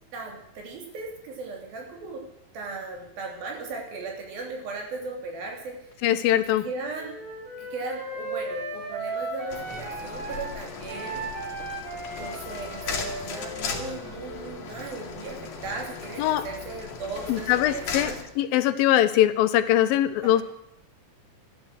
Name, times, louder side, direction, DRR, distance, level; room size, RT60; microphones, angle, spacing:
voice 1, 0.1-2.2 2.5-5.8 6.6-7.2 7.6-11.2 12.2-18.2 20.2-20.4, right 3 dB, 80° right, 0 dB, 4.9 m, -37 dB
voice 2, 6.0-6.7 16.2-16.5 17.3-18.1 18.4-20.4, left 12 dB, 85° left, 12 dB, 2.6 m, -22 dB
Wind instrument woodwind instrument, 7.0-10.5 10.9-14.6, right 2 dB, 60° right, 5.1 m, -36 dB
sound 1, 9.5-18.2, left 5 dB, 65° left, 3.4 m, -37 dB
13.5 x 12.5 x 7.6 m, 0.78 s
omnidirectional pair, 4.1 m